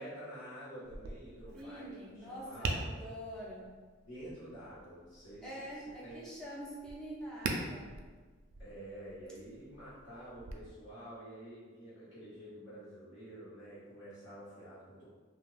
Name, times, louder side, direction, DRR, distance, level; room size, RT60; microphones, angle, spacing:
voice 1, 0.0-3.0 4.1-6.3 8.6-15.1, right 1 dB, 70° left, -13 dB, 1.0 m, -49 dB
Tap, 0.8-10.5, right 3 dB, 65° right, 0.3 m, -44 dB
voice 2, 1.5-3.7 5.4-7.9, equal, 5° left, -7 dB, 0.5 m, -45 dB
2.4 x 2.3 x 3.2 m, 1.4 s
head